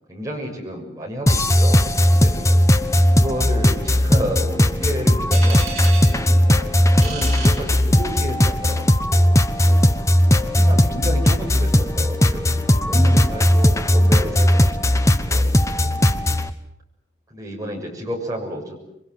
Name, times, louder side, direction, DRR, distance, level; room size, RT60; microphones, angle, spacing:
voice 1, 0.1-2.3 3.1-5.7 6.4-9.4 10.4-12.6 12.8-15.6 17.3-18.8, equal, 20° right, 0 dB, 6.9 m, -31 dB
sound 1, 1.3-16.5, left 1 dB, 15° left, 1.1 m, -17 dB
voice 2, 1.7-2.5 6.1-6.4 9.5-10.0 12.9-13.2 14.2-14.4 15.5-16.0, equal, 35° left, -3 dB, 7.7 m, -40 dB
sound 2, 5.3-8.4, right 5 dB, 40° right, 6.4 m, -35 dB
27.5 x 23.5 x 8.0 m, 0.81 s
head